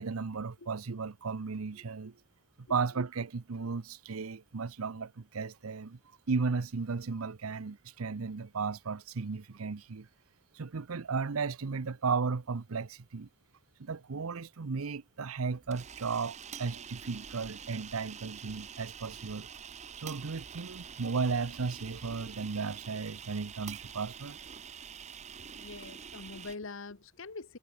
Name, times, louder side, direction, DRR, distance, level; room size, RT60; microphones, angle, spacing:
voice 1, 0.0-2.1 2.7-6.0 6.3-10.1 10.5-13.3 13.8-19.5 20.0-24.4, right 4 dB, 90° right, 0.7 m, -35 dB
sound 1, 15.5-26.6, right 7 dB, 35° right, 0.8 m, -46 dB
voice 2, 25.5-27.6, left 3 dB, 65° left, 1.2 m, -44 dB
head